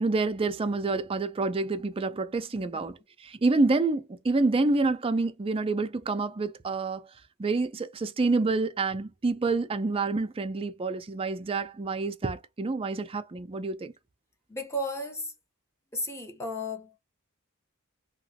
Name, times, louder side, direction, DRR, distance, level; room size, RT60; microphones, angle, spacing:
voice 1, 0.0-3.0 3.2-7.0 7.4-13.9, right 3 dB, 25° right, 0.4 m, -28 dB
voice 2, 2.6-2.9 14.5-15.3 15.9-17.0, left 1 dB, 10° left, 0.8 m, -34 dB
3.0 x 2.9 x 2.7 m
head